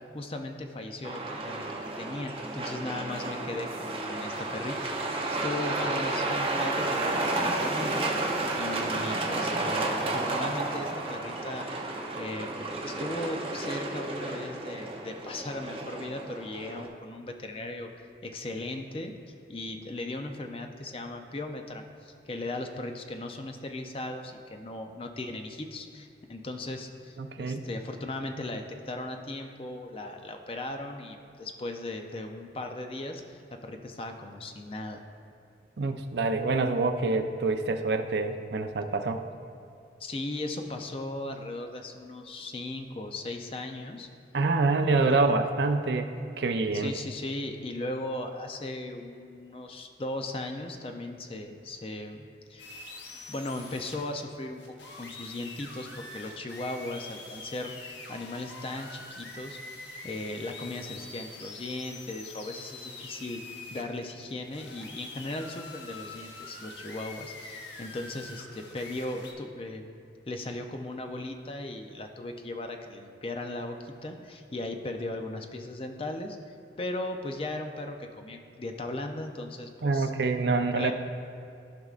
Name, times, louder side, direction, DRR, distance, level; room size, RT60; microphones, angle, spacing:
voice 1, 0.1-1.6 2.0-11.7 12.1-19.1 19.5-35.0 40.0-44.1 46.7-52.7 53.3-54.6 55.0-63.4 63.7-69.9 70.3-80.1 80.6-80.9, left 2 dB, 30° left, 4 dB, 0.5 m, -37 dB
Truck, 1.0-16.9, right 2 dB, 30° right, 0.7 m, -32 dB
voice 2, 27.2-27.6 35.8-39.2 44.3-46.1 46.4-46.9 79.8-80.9, right 3 dB, 70° right, 6 dB, 0.5 m, -26 dB
sound 1, 52.6-69.3, left 3 dB, 80° left, 0.9 m, -45 dB
14.5 x 5.3 x 2.4 m, 2.5 s
head